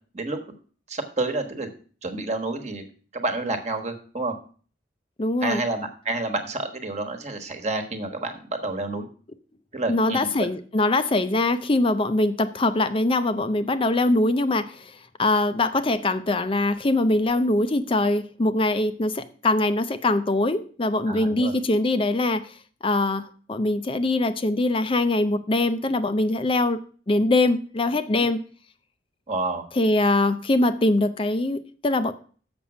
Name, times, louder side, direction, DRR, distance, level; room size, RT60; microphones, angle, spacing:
voice 1, 0.9-1.7 2.0-2.8 3.1-4.3 5.4-9.1 9.7-10.5 21.1-21.6 29.3-29.6, right 2 dB, 35° right, 7 dB, 1.3 m, -29 dB
voice 2, 5.2-5.6 9.9-22.6 22.8-26.8 27.1-28.4 29.7-32.1, left 2 dB, 30° left, 11 dB, 0.5 m, -23 dB
7.1 x 6.1 x 7.3 m, 0.42 s
head